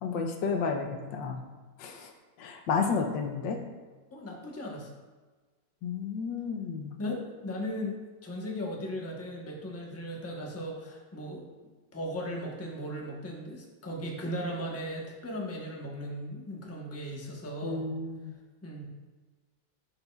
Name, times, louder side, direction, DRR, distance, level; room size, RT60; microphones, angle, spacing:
voice 1, 0.0-1.4 1.8-2.1 2.4-3.6 5.8-7.0 17.6-18.3, left 5 dB, 90° left, 3 dB, 1.5 m, -31 dB
voice 2, 4.1-4.9 7.0-11.4 11.9-17.9 18.6-18.8, equal, 10° left, -2 dB, 0.7 m, -37 dB
11.0 x 5.4 x 2.3 m, 1.3 s
omnidirectional pair, 2.0 m